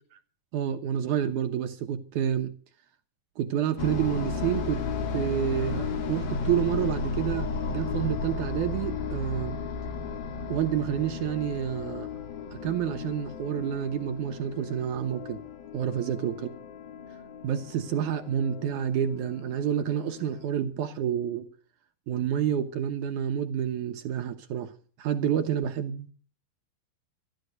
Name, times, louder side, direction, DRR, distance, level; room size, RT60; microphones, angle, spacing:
voice 1, 0.5-2.5 3.4-4.8 5.1-9.6 10.5-12.1 12.5-15.4 15.7-16.5 17.4-21.5 22.1-24.7 25.0-26.1, right 9 dB, 75° right, 2.0 m, -29 dB
sound 1, 3.8-20.5, left 5 dB, 75° left, 3.6 m, -34 dB
13.0 x 12.0 x 7.9 m
omnidirectional pair, 4.3 m